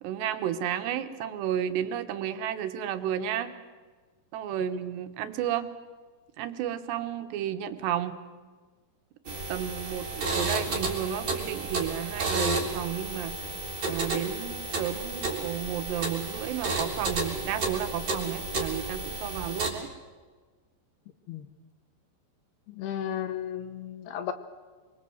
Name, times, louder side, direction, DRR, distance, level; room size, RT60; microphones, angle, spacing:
voice 1, 0.0-3.5 4.3-5.7 6.4-8.2 9.3-13.3 13.8-19.9, right 10 dB, 75° right, 9 dB, 3.3 m, -32 dB
sound 1, 9.2-19.7, right 3 dB, 30° right, 3.7 m, -32 dB
voice 2, 22.7-24.3, left 10 dB, 70° left, 10 dB, 2.8 m, -34 dB
25.0 x 23.5 x 7.9 m, 1.4 s
omnidirectional pair, 5.2 m